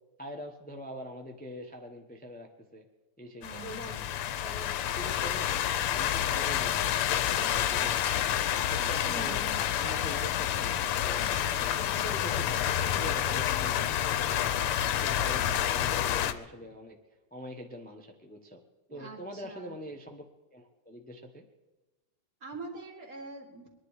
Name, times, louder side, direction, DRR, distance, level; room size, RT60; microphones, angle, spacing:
voice 1, 0.2-2.8 3.2-4.1 4.4-5.6 5.9-9.4 9.8-17.0 17.3-18.6 18.9-20.2 20.5-21.4, equal, 10° left, 3 dB, 0.5 m, -44 dB
sound 1, 3.4-16.3, left 11 dB, 85° left, 1.7 m, -29 dB
voice 2, 3.4-4.0 8.7-9.6 18.9-19.8 22.4-23.7, right 3 dB, 40° right, 2 dB, 2.4 m, -44 dB
23.0 x 10.5 x 4.9 m, 1.2 s
omnidirectional pair, 2.4 m